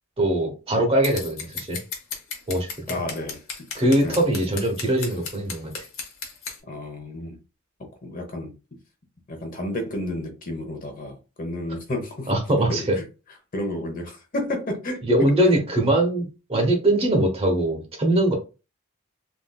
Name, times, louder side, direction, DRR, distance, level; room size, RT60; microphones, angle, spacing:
voice 1, 0.2-1.8 2.5-3.0 3.7-5.9 12.3-12.8 15.0-18.3, right 1 dB, 25° right, 0.8 m, -22 dB
Scissors, 1.0-6.6, left 5 dB, 65° left, 1.0 m, -34 dB
voice 2, 2.9-3.7 4.0-4.2 6.7-7.3 8.0-8.5 9.3-12.3 12.7-13.0 13.5-15.6, left 1 dB, 40° left, 0.8 m, -31 dB
3.6 x 2.6 x 2.2 m
head